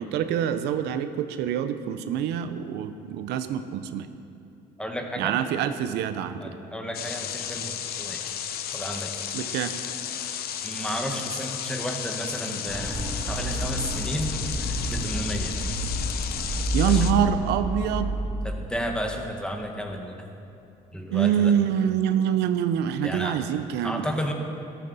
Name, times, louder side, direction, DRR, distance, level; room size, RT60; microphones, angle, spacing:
voice 1, 0.0-4.1 5.2-6.5 9.3-9.7 16.7-18.1 21.1-24.1, right 9 dB, 85° right, 10 dB, 0.6 m, -25 dB
voice 2, 4.8-5.4 6.4-8.2 8.7-9.1 10.6-14.3 14.6-15.5 16.0-16.1 16.9-17.0 18.4-20.3 20.9-21.5 23.0-23.3 23.8-24.3, equal, 5° left, 3 dB, 1.4 m, -32 dB
sound 1, 6.9-17.1, left 9 dB, 65° left, 0.8 m, -33 dB
sound 2, 12.7-18.2, left 1 dB, 10° right, 2.2 m, -29 dB
13.5 x 13.0 x 4.1 m, 2.7 s
cardioid pair, 110°, 17 cm